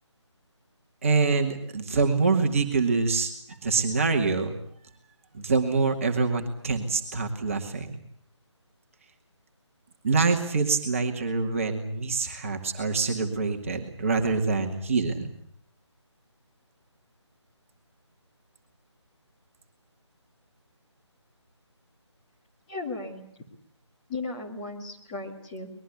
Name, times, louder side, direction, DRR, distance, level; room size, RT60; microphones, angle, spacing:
voice 1, 1.0-4.6 5.3-8.0 10.0-15.3, right 4 dB, 25° right, 3 dB, 2.2 m, -25 dB
voice 2, 22.7-23.2 24.1-25.7, left 3 dB, 15° left, -2 dB, 2.7 m, -35 dB
24.0 x 21.5 x 8.4 m, 0.64 s
figure-of-eight pair, 155°, 15 cm